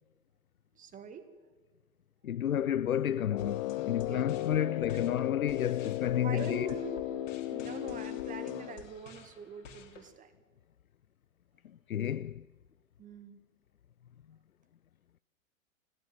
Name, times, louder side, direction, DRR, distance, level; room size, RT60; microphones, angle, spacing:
voice 1, 0.7-1.3 4.0-4.4 4.7-4.8 6.2-10.3 13.0-13.4, right 7 dB, 20° right, 2.0 m, -45 dB
voice 2, 2.2-6.7 11.9-12.4, left 10 dB, 75° left, 0.6 m, -31 dB
Brass instrument, 3.3-8.9, left 16 dB, 30° left, 0.8 m, -36 dB
sound 1, 3.4-10.1, left 6 dB, 60° left, 3.0 m, -53 dB
20.0 x 15.5 x 9.6 m
figure-of-eight pair, 105°, 42 cm